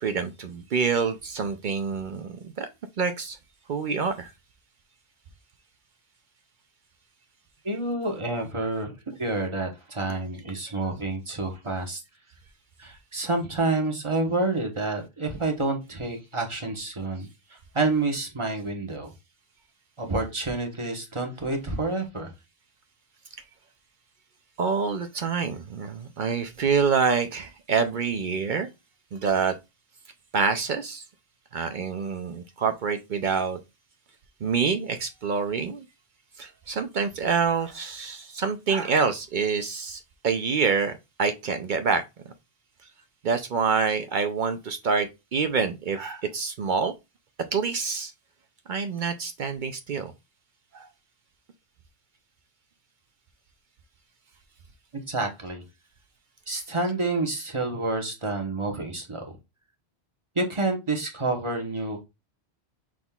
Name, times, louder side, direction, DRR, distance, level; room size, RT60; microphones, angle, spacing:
voice 1, 0.0-2.7 3.0-3.4 3.7-4.3 24.6-28.7 29.1-29.6 30.3-31.0 31.5-33.6 34.4-35.8 36.4-42.0 43.2-46.9 47.5-48.1 48.7-50.1 50.7-50.9, right 5 dB, 55° right, 0.6 m, -26 dB
voice 2, 7.6-12.0 12.8-19.1 20.0-22.3 55.1-55.6 56.5-59.4 60.3-62.1, right 2 dB, 30° right, 1.1 m, -29 dB
6.0 x 3.6 x 2.3 m
omnidirectional pair, 1.1 m